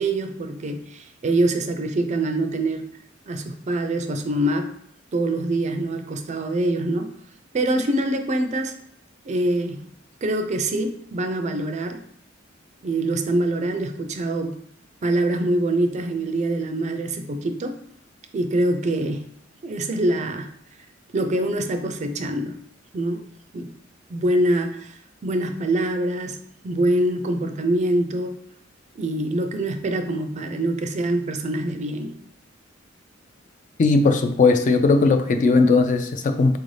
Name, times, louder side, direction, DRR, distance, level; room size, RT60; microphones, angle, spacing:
voice 1, 0.0-2.8 3.3-4.7 5.1-7.1 7.5-8.7 9.2-9.8 10.2-12.0 12.8-14.6 15.0-17.8 18.3-19.2 19.6-20.5 21.1-22.6 22.9-23.7 24.1-28.4 29.0-32.2, right 1 dB, 35° right, 0.4 m, -24 dB
voice 2, 33.8-36.6, left 3 dB, 40° left, 0.3 m, -18 dB
4.0 x 2.6 x 3.2 m
head